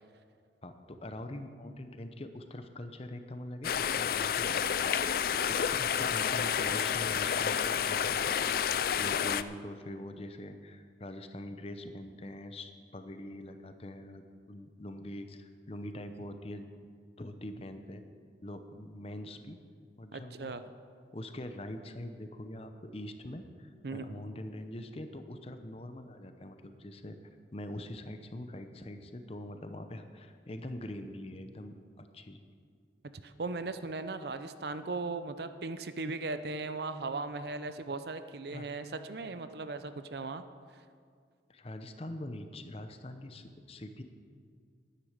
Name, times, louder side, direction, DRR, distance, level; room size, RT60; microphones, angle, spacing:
voice 1, 0.6-16.7 17.2-18.0 18.4-19.6 20.0-20.5 21.1-27.2 27.5-32.4 38.5-38.7 41.5-44.0, left 1 dB, 30° left, 8 dB, 0.7 m, -43 dB
sound 1, 3.6-9.4, left 8 dB, 50° left, 0.3 m, -30 dB
voice 2, 20.1-20.6 23.8-24.0 33.2-40.4, right 3 dB, 65° right, 11 dB, 0.6 m, -38 dB
11.0 x 9.9 x 6.6 m, 2.1 s
head